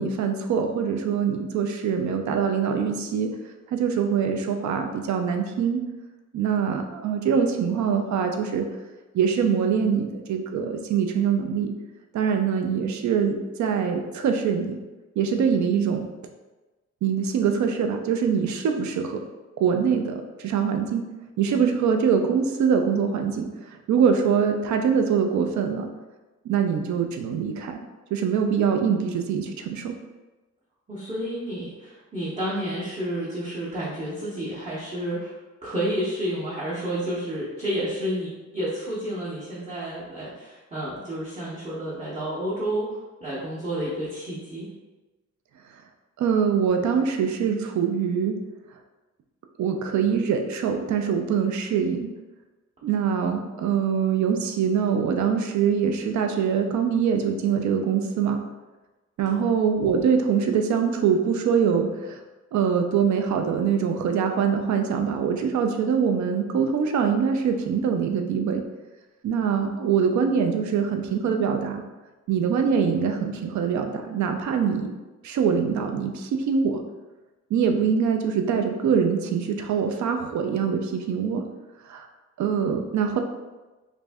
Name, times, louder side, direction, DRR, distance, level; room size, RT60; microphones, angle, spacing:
voice 1, 0.0-3.3 3.7-5.8 6.3-8.6 9.1-11.7 12.1-14.8 15.2-16.0 17.0-19.2 19.6-21.0 21.4-23.5 23.9-25.9 26.4-27.8 28.1-29.9 46.2-48.3 49.6-52.1 52.8-58.4 59.2-62.2 62.5-68.6 69.2-71.8 72.3-74.9 75.2-76.8 77.5-81.4 81.9-82.1 82.4-83.2, right 7 dB, 75° right, 5 dB, 0.5 m, -23 dB
voice 2, 30.9-35.3 35.6-42.9 43.2-44.7 59.3-59.5, right 1 dB, 20° right, -9 dB, 0.7 m, -30 dB
3.1 x 2.6 x 3.4 m, 1.2 s
wide cardioid pair, 165°, 29 cm